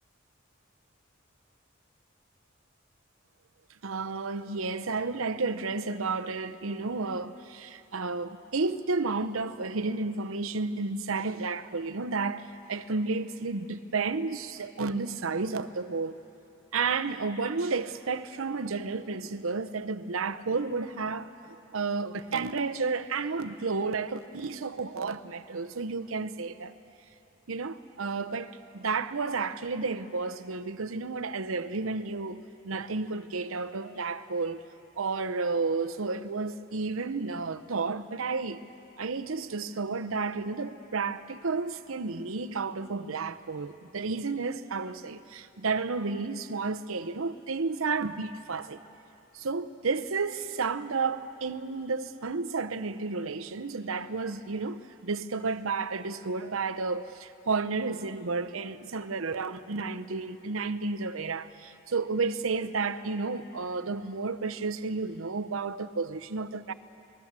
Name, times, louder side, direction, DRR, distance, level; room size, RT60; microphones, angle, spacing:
voice 1, 3.8-16.2 16.7-21.3 21.7-26.7 27.5-34.6 35.0-38.6 39.0-48.8 49.3-66.7, right 4 dB, 85° right, 0.8 m, -32 dB
26.5 x 20.5 x 7.5 m
head